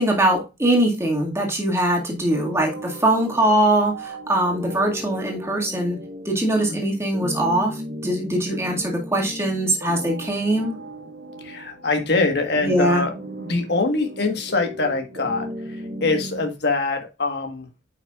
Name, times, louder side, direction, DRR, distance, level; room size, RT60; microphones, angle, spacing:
voice 1, 0.0-10.8 12.6-13.1, right 1 dB, 15° right, 0 dB, 1.9 m, -22 dB
sound 1, 2.3-16.5, equal, 60° right, 1.6 m, -36 dB
voice 2, 11.4-13.1 13.4-17.7, left 3 dB, 60° left, 4 dB, 1.5 m, -24 dB
9.1 x 5.7 x 2.4 m, 0.26 s
head